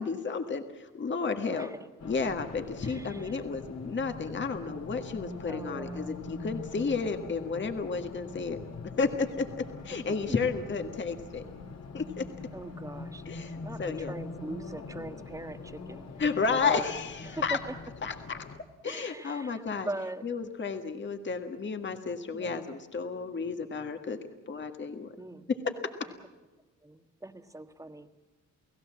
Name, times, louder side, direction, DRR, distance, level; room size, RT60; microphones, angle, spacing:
voice 1, 0.0-1.7 2.0-8.6 9.0-11.4 11.9-12.3 13.2-14.1 16.2-17.6 18.0-18.4 18.8-19.9 20.2-24.2 24.5-25.1, left 5 dB, 40° left, 7 dB, 1.7 m, -32 dB
voice 2, 1.5-1.8 2.8-3.4 5.5-6.2 10.1-10.4 12.5-16.1 16.6-16.9 17.2-17.7 18.8-20.2 22.3-22.6 25.1-25.5 26.0-26.1 26.8-28.1, right 1 dB, 10° right, 8 dB, 1.5 m, -41 dB
Race car auto racing, 2.0-18.6, left 3 dB, 55° left, 2.4 m, -43 dB
30.0 x 17.0 x 7.5 m, 1.2 s
cardioid pair, 110°, 31 cm